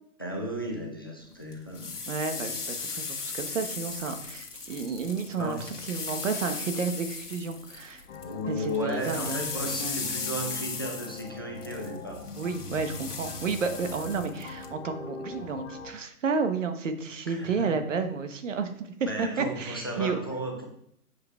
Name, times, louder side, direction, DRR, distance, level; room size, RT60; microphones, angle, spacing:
voice 1, 0.2-2.0 5.3-5.7 8.2-12.3 17.3-17.7 19.1-20.6, equal, 15° left, 0 dB, 0.4 m, -34 dB
sound 1, 1.5-8.3 8.6-14.7, left 4 dB, 75° left, 1.5 m, -37 dB
voice 2, 2.1-8.0 8.5-9.4 9.8-10.0 12.4-20.2, right 5 dB, 50° right, 8 dB, 1.2 m, -31 dB
sound 2, 8.1-15.9, left 4 dB, 45° left, 1.3 m, -42 dB
7.8 x 5.1 x 3.5 m, 0.70 s
figure-of-eight pair, 140°, 46 cm